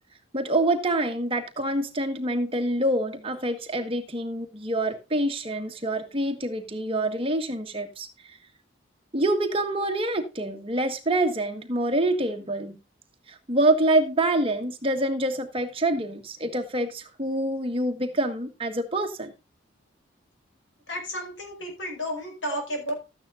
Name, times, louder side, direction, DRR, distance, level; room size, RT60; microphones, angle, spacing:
voice 1, 0.3-8.1 9.1-12.8 13.3-19.3, right 1 dB, 30° right, 1.4 m, -26 dB
voice 2, 20.9-22.9, equal, 75° left, 4.9 m, -32 dB
13.0 x 9.5 x 2.5 m
head